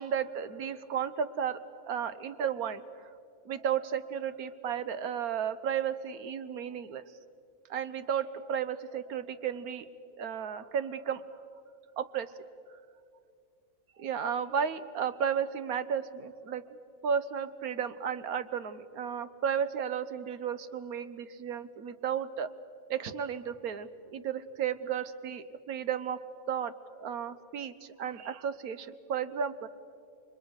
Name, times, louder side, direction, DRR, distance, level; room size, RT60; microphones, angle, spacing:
voice 1, 0.0-1.6 1.9-2.8 3.4-7.0 7.7-9.9 10.2-11.2 12.0-12.3 14.0-16.8 17.0-22.5 22.9-26.2 26.5-29.7, right 8 dB, 80° right, 13 dB, 1.4 m, -33 dB
29.5 x 24.0 x 6.5 m, 2.3 s
omnidirectional pair, 1.5 m